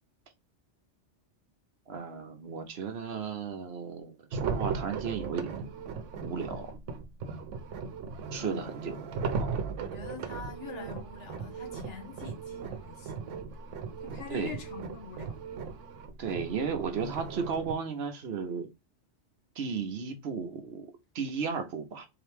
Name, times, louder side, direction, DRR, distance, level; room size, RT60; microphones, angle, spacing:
voice 1, 1.9-5.7 6.2-6.7 7.3-7.4 8.3-9.0 9.3-9.6 14.3-14.6 16.2-18.7 19.6-22.1, right 6 dB, 60° right, 1.0 m, -35 dB
sound 1, 4.3-17.7, right 5 dB, 85° right, 1.0 m, -37 dB
voice 2, 8.4-9.0 9.8-13.3 14.0-15.4, left 5 dB, 75° left, 1.5 m, -44 dB
3.8 x 2.9 x 3.3 m
omnidirectional pair, 1.2 m